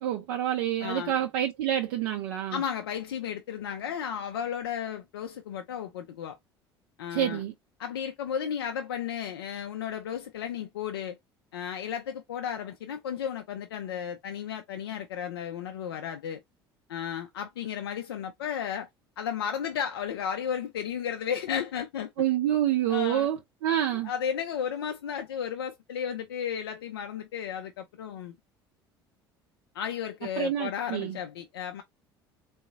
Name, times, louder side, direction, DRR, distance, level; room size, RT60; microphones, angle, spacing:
voice 1, 0.0-2.6 7.1-7.5 22.2-24.1 30.4-31.2, right 11 dB, 60° right, 0.5 m, -27 dB
voice 2, 0.8-1.2 2.5-6.4 7.0-7.4 7.8-11.2 11.5-16.4 16.9-18.9 19.2-22.1 22.9-23.3 24.0-28.3 29.7-31.8, left 8 dB, 70° left, 0.5 m, -34 dB
3.8 x 2.3 x 3.6 m
figure-of-eight pair, 60°, 13 cm